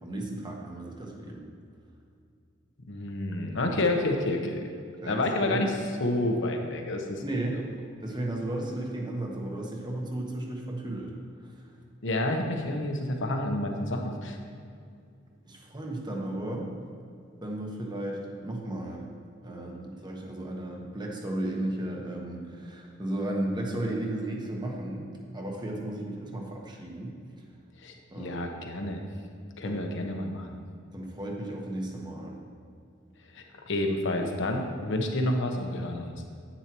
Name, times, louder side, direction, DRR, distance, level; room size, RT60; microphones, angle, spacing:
voice 1, 0.0-1.5 5.0-5.6 7.2-7.6 8.0-11.1 11.4-11.6 15.4-16.7 17.4-19.0 19.4-27.1 28.1-28.6 29.6-29.9 30.9-32.4, right 1 dB, 20° right, 0 dB, 1.2 m, -34 dB
voice 2, 2.9-4.7 5.1-5.7 6.0-7.4 12.0-14.4 27.8-29.0 29.6-30.6 33.3-36.1, left 1 dB, 65° left, 3 dB, 1.0 m, -29 dB
10.0 x 8.8 x 3.0 m, 2.4 s
head